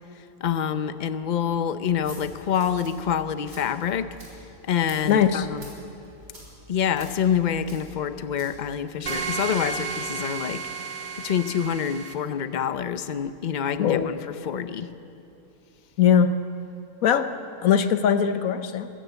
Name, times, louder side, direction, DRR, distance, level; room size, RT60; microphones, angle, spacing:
voice 1, 0.4-4.1 4.7-5.7 6.7-10.6 11.2-14.2 14.5-14.9, left 8 dB, 45° left, 12 dB, 0.6 m, -26 dB
sound 1, 1.8-9.8, right 1 dB, 70° right, 4.7 m, -48 dB
voice 2, 5.1-5.5 13.8-14.1 16.0-16.3 17.0-17.3 17.6-18.9, left 8 dB, 70° left, 11 dB, 1.3 m, -20 dB
sound 2, 9.1-12.1, right 5 dB, 40° right, 1.2 m, -32 dB
22.5 x 14.5 x 8.1 m, 2.8 s
omnidirectional pair, 1.5 m